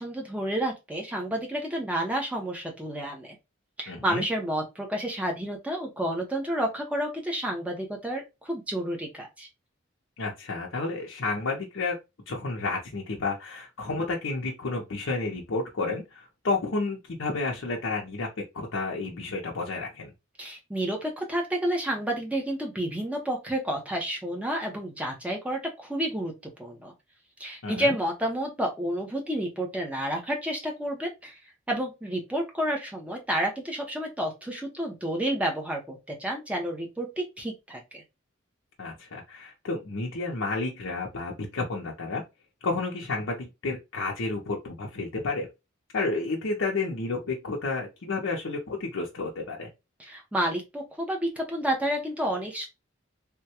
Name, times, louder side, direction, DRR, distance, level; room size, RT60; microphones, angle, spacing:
voice 1, 0.0-3.4 3.8-9.5 20.4-26.3 26.6-26.9 27.4-31.4 31.7-38.0 50.0-52.7, right 1 dB, 5° right, 0.7 m, -30 dB
voice 2, 3.9-4.2 10.2-12.0 12.3-18.3 18.5-20.1 27.6-27.9 38.8-42.2 42.6-45.5 45.9-49.7, left 3 dB, 80° left, 0.6 m, -31 dB
3.5 x 2.2 x 2.8 m
head